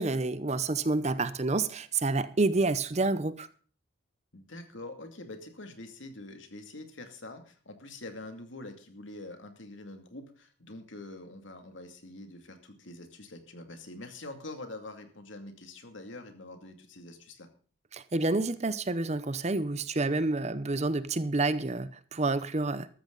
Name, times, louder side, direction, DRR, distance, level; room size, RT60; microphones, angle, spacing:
voice 1, 0.0-3.5 17.9-22.9, right 3 dB, 35° right, 0.7 m, -28 dB
voice 2, 4.3-17.5, left 2 dB, 65° left, 2.5 m, -45 dB
14.0 x 13.5 x 4.0 m
head